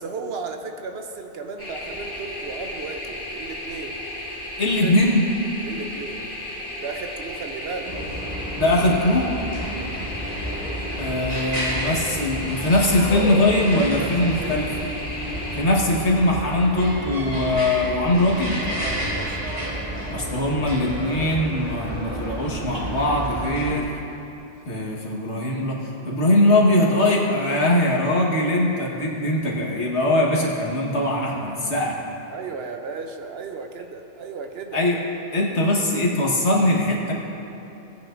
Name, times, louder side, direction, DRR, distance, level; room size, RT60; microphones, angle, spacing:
voice 1, 0.0-4.1 4.7-5.0 5.6-6.3 6.8-7.9 9.8-10.1 13.9-14.7 18.7-19.4 32.3-34.8, right 4 dB, 65° right, 5 dB, 0.9 m, -35 dB
sound 1, 1.6-15.6, left 1 dB, 40° left, 2.3 m, -34 dB
voice 2, 4.6-5.2 8.6-9.3 11.0-14.7 15.6-18.6 20.1-24.0 24.7-32.0 34.7-35.0 35.3-37.1, left 1 dB, 80° left, -3 dB, 1.7 m, -21 dB
sound 2, 7.8-23.7, equal, 35° right, 1.7 m, -31 dB
18.0 x 9.1 x 2.6 m, 2.9 s
omnidirectional pair, 1.2 m